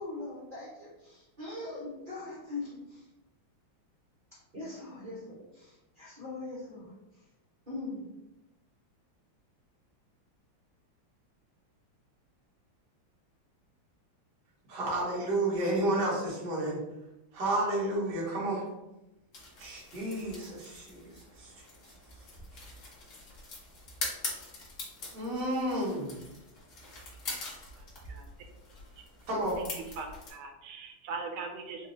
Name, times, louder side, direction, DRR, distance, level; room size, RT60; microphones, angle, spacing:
voice 1, 0.0-3.1 4.3-7.2 7.7-8.0, left 2 dB, 45° right, -8 dB, 0.6 m, -41 dB
voice 2, 14.7-16.8 17.3-18.7 19.6-21.0 21.4-21.5 25.1-26.1 29.3-29.6, right 1 dB, 60° right, -5 dB, 1.6 m, -31 dB
sound 1, 19.3-30.3, left 3 dB, 55° left, 0.9 m, -43 dB
voice 3, 27.8-28.2 30.0-31.9, right 4 dB, 80° right, 4 dB, 1.4 m, -40 dB
4.0 x 2.4 x 2.6 m, 0.96 s
omnidirectional pair, 2.2 m